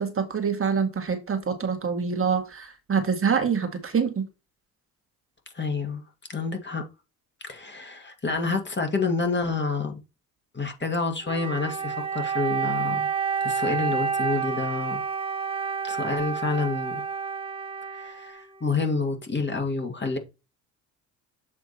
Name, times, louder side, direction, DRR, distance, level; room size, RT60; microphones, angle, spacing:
voice 1, 0.0-4.3, right 6 dB, 30° right, 1.7 m, -26 dB
voice 2, 5.5-6.0 6.3-6.8 7.4-10.0 10.5-13.1 13.4-15.0 15.8-17.0 17.9-20.2, left 3 dB, 25° left, 2.2 m, -28 dB
Wind instrument woodwind instrument, 11.2-18.8, right 6 dB, 15° right, 1.0 m, -29 dB
7.6 x 3.5 x 4.2 m
hypercardioid pair, 65°, 41 cm